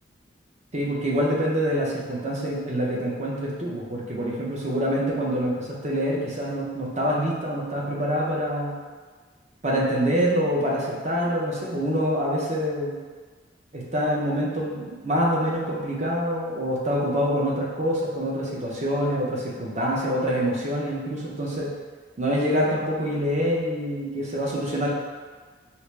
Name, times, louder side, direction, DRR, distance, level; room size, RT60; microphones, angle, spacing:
voice 1, 0.7-8.8 9.6-13.0 13.7-21.7 22.2-24.9, equal, 35° right, -4 dB, 0.6 m, -26 dB
4.3 x 2.0 x 3.2 m, 1.4 s
head